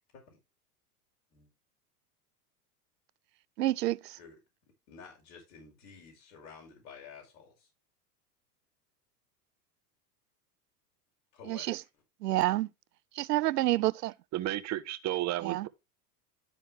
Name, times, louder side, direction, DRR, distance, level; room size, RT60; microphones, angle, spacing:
voice 1, 3.6-4.2 11.5-11.8 12.2-12.7 13.1-14.1 15.4-15.7, right 16 dB, 85° right, 0.6 m, -28 dB
voice 2, 4.9-7.7 11.3-11.8, left 5 dB, 65° left, 5.3 m, -51 dB
voice 3, 14.3-15.7, right 14 dB, 35° right, 1.0 m, -32 dB
12.5 x 4.5 x 3.4 m
hypercardioid pair, 105°, 47 cm